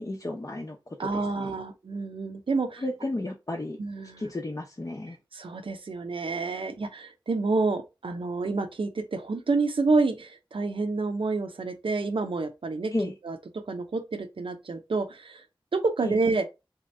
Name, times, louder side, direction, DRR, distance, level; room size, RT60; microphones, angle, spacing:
voice 1, 0.0-1.5 2.8-3.8 4.2-5.2 12.9-13.1 16.0-16.2, left 2 dB, 40° left, 0.7 m, -33 dB
voice 2, 1.0-2.8 3.8-4.3 5.3-12.9 13.2-13.4 13.7-15.4 15.7-16.4, right 3 dB, 80° right, 0.6 m, -28 dB
3.6 x 2.8 x 3.2 m
wide cardioid pair, 50°, 9 cm